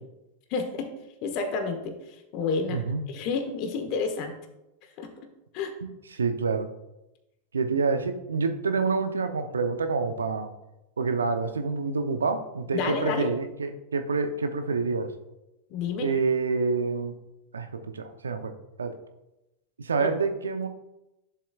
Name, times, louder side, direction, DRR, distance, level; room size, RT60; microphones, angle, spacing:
voice 1, 0.5-0.9 1.2-2.8 3.1-4.4 5.0-5.1 5.5-5.7 12.7-13.3 15.7-16.1 20.0-20.1, left 4 dB, 50° left, 6 dB, 1.2 m, -30 dB
voice 2, 2.7-3.0 6.1-6.7 7.5-10.5 11.0-15.1 16.0-17.1 17.5-18.5 18.8-18.9 19.8-20.7, right 4 dB, 85° right, 9 dB, 0.7 m, -27 dB
10.5 x 7.3 x 2.4 m, 0.93 s
hypercardioid pair, 90°, 0 cm